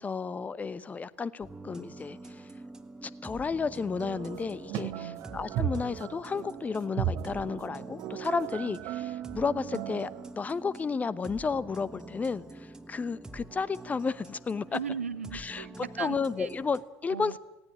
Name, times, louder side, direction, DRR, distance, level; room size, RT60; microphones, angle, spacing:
voice 1, 0.0-2.5 3.0-4.9 5.3-14.8 15.3-15.7 16.0-17.4, left 5 dB, 20° left, 18 dB, 0.9 m, -32 dB
sound 1, 1.4-16.9, right 2 dB, 10° right, 1.4 m, -47 dB
sound 2, 4.0-10.3, right 10 dB, 50° right, 1.2 m, -36 dB
voice 2, 4.8-5.2 14.7-16.5 17.1-17.4, right 7 dB, 80° right, 13 dB, 0.9 m, -37 dB
18.5 x 17.5 x 9.8 m, 1.0 s
figure-of-eight pair, 70°, 7 cm